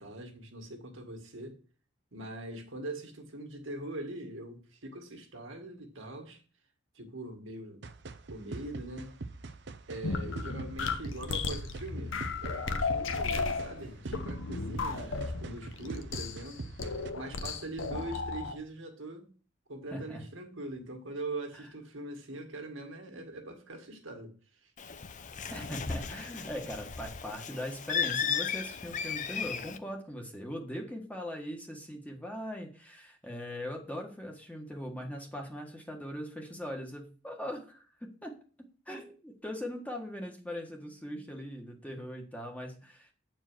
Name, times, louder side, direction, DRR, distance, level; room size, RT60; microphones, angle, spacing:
voice 1, 0.0-1.6 2.1-6.4 6.9-7.8 8.3-9.2 9.9-16.7 17.1-19.3 19.7-25.0, right 2 dB, 75° right, 1.9 m, -42 dB
sound 1, 7.8-17.1, right 3 dB, 60° right, 0.7 m, -44 dB
sound 2, 10.0-18.5, left 4 dB, 70° left, 0.9 m, -35 dB
voice 2, 19.9-20.2 25.5-38.3 38.9-43.1, equal, 5° left, 1.4 m, -40 dB
Bird, 24.8-29.8, left 7 dB, 40° left, 0.6 m, -35 dB
9.0 x 4.6 x 6.2 m
head